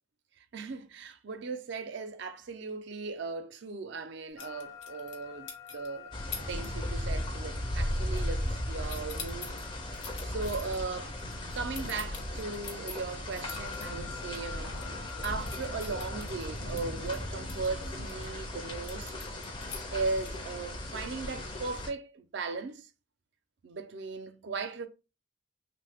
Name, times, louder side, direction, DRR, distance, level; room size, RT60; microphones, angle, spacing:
voice 1, 0.4-6.2 6.5-9.5 9.9-11.2 11.5-14.7 15.2-19.1 19.9-22.9 23.6-24.9, right 4 dB, 60° right, 0.4 m, -37 dB
sound 1, 4.4-16.3, left 7 dB, 85° left, 0.4 m, -48 dB
sound 2, 4.4-5.2 5.5-5.9 6.3-6.7 7.0-7.3 7.6-8.6 8.8-13.9 14.3-14.4 14.7-18.3 18.8-20.5, left 6 dB, 60° left, 0.9 m, -45 dB
sound 3, 6.1-21.9, left 1 dB, 25° left, 0.5 m, -37 dB
3.1 x 2.0 x 3.4 m
head